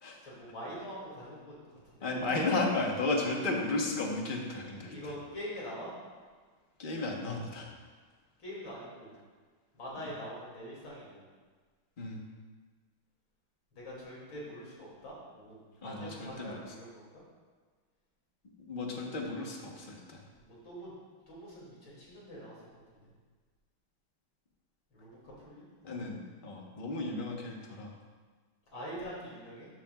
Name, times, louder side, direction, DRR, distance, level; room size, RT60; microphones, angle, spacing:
voice 1, 0.2-1.6 1.9-2.3 4.6-5.9 8.4-9.1 9.7-11.2 13.7-17.1 20.4-20.9 21.3-23.1 24.9-25.6 25.9-26.1 28.7-29.7, equal, 65° left, -6 dB, 3.4 m, -44 dB
voice 2, 2.0-5.1 6.8-7.7 10.0-10.1 12.0-12.2 15.8-16.7 18.7-20.2 25.8-27.9, left 2 dB, 30° left, 0 dB, 1.0 m, -34 dB
13.0 x 8.8 x 2.4 m, 1.5 s
omnidirectional pair, 2.3 m